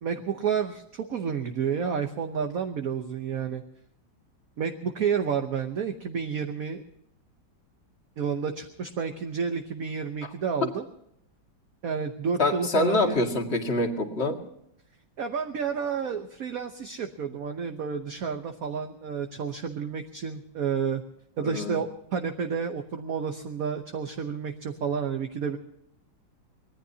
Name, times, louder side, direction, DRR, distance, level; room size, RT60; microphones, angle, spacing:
voice 1, 0.0-3.6 4.6-6.8 8.2-10.8 11.8-13.2 15.2-21.0 21.4-25.6, right 6 dB, 55° right, 5 dB, 1.2 m, -30 dB
voice 2, 12.4-14.4 21.4-21.8, left 2 dB, 35° left, 3 dB, 2.1 m, -25 dB
24.5 x 19.5 x 2.8 m, 0.76 s
omnidirectional pair, 2.1 m